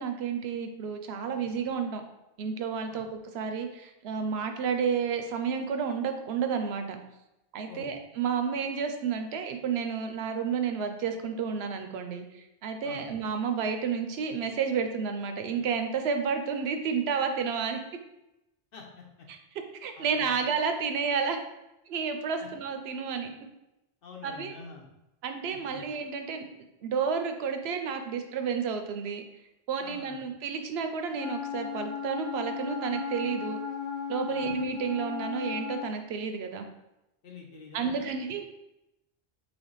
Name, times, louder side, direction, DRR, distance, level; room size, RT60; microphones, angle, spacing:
voice 1, 0.0-2.0 2.4-3.1 3.3-7.0 7.5-17.8 19.8-21.4 21.9-23.3 24.2-24.6 25.2-26.4 26.8-29.2 29.7-33.6 34.1-36.7 37.7-38.5, right 6 dB, 85° right, 6 dB, 0.8 m, -31 dB
voice 2, 18.7-19.3 20.0-20.4 22.4-22.5 24.0-24.9 25.5-25.9 29.8-30.2 34.3-34.6 37.2-38.1, left 4 dB, 65° left, 1 dB, 0.9 m, -47 dB
Wind instrument woodwind instrument, 31.2-36.0, left 6 dB, 35° left, 0.6 m, -35 dB
3.4 x 3.2 x 3.9 m, 0.91 s
omnidirectional pair, 1.0 m